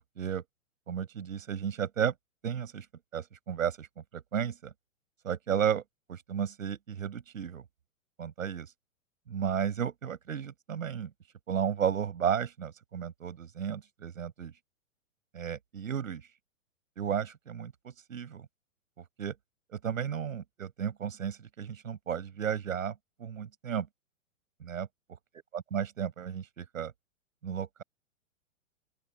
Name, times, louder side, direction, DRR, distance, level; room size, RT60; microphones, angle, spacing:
voice 1, 0.9-2.1 2.4-2.9 3.1-3.9 4.1-4.7 5.2-5.8 6.1-7.6 8.2-8.7 9.3-11.1 11.5-14.5 15.3-16.3 17.0-18.5 19.2-19.4 19.7-22.9 23.2-23.9 24.6-24.9 25.5-26.9 27.4-27.8, right 8 dB, 75° right, 7.5 m, -33 dB
open air
hypercardioid pair, 120°, 40 cm